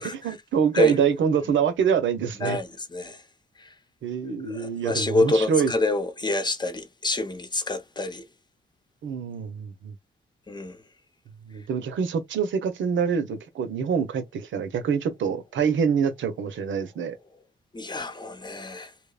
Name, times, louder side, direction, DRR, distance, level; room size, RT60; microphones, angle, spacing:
voice 1, 0.0-2.6 4.0-5.7 9.0-9.9 11.5-17.1, right 7 dB, 75° right, 0.7 m, -25 dB
voice 2, 2.4-3.2 3.6-3.7 4.5-8.2 10.5-10.8 17.7-18.9, left 2 dB, 20° left, 0.8 m, -27 dB
2.9 x 2.1 x 2.3 m
supercardioid pair, 55°, 20 cm